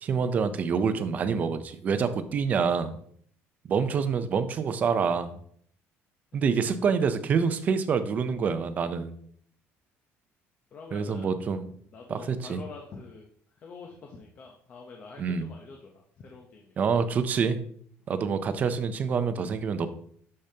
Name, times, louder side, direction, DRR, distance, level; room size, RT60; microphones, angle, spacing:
voice 1, 0.0-3.0 3.6-5.4 6.3-9.2 10.9-11.6 12.1-12.6 15.2-15.5 16.8-17.6 18.1-19.9, right 6 dB, 30° right, 11 dB, 0.5 m, -26 dB
voice 2, 10.7-11.3 11.9-13.3 13.6-16.8, left 4 dB, 35° left, 1 dB, 0.7 m, -46 dB
6.8 x 6.6 x 2.8 m, 0.62 s
cardioid pair, 170°, 5 cm